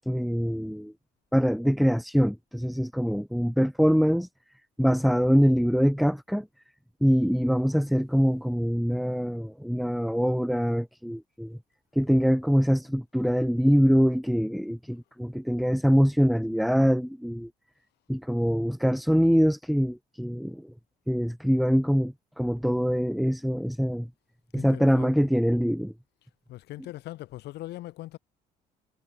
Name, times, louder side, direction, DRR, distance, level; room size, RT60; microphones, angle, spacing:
voice 1, 0.1-0.9 1.3-4.3 4.8-6.5 7.0-11.6 12.0-17.5 18.1-20.7 21.1-24.1 24.5-25.9, equal, ahead, 0.5 m, -24 dB
voice 2, 24.5-25.1 26.5-28.2, left 16 dB, 75° left, 4.2 m, -40 dB
cardioid pair, 110°, 17 cm